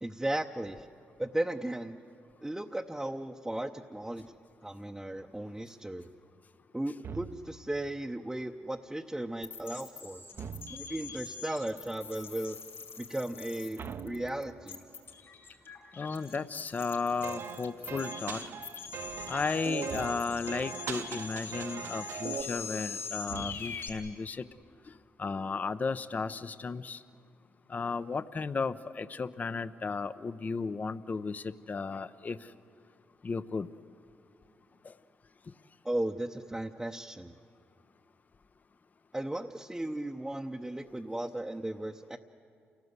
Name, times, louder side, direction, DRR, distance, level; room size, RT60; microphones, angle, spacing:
voice 1, 0.0-0.9 1.2-2.0 2.4-4.3 4.6-6.1 6.7-10.2 10.7-12.6 13.0-14.8 35.8-37.3 39.1-42.2, right 1 dB, 10° right, 1 dB, 0.7 m, -36 dB
sound 1, 7.0-7.8 10.3-11.2 13.8-14.9 19.9-20.6 23.3-24.1, right 6 dB, 55° right, 0.7 m, -44 dB
sound 2, 9.4-23.9, left 5 dB, 60° left, 4.6 m, -43 dB
voice 2, 16.0-18.4 19.3-24.4 25.2-27.0 27.7-32.4 33.2-33.7 34.8-34.9, left 4 dB, 35° left, 13 dB, 0.6 m, -34 dB
sound 3, 17.2-22.4, right 6 dB, 75° right, 1.1 m, -39 dB
28.5 x 17.5 x 8.1 m, 2.4 s
cardioid pair, 70°, 5 cm